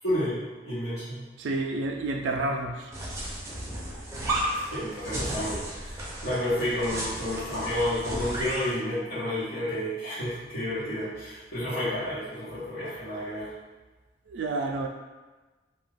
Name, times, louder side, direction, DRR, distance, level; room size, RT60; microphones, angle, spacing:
voice 1, 0.0-1.3 4.7-13.5, left 1 dB, 75° left, -15 dB, 1.0 m, -31 dB
voice 2, 1.4-2.9 14.3-14.9, right 2 dB, 85° right, 3 dB, 0.3 m, -29 dB
sound 1, 2.9-8.7, right 1 dB, 15° right, 0.5 m, -33 dB
2.3 x 2.3 x 3.3 m, 1.2 s
head